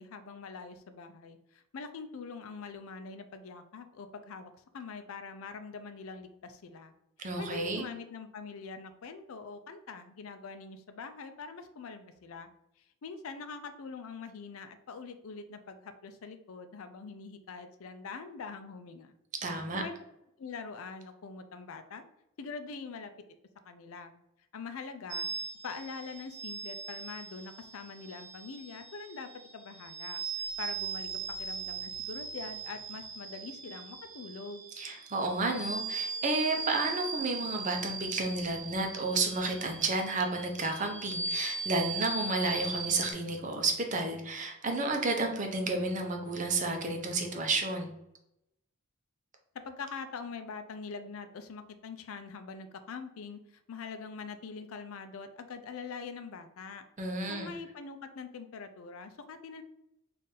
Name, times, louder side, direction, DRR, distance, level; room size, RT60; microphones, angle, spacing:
voice 1, 0.0-6.9 7.4-12.5 13.0-19.2 19.7-19.9 20.4-22.1 22.4-23.1 23.7-24.2 24.5-25.3 25.6-34.7 49.6-59.6, left 4 dB, 80° left, 9 dB, 0.4 m, -44 dB
voice 2, 7.2-7.9 19.4-19.8 34.8-47.9 57.0-57.5, right 3 dB, 35° right, 3 dB, 0.6 m, -31 dB
sound 1, 25.1-43.1, right 4 dB, 70° right, 0.7 m, -39 dB
3.8 x 2.5 x 4.1 m, 0.83 s
head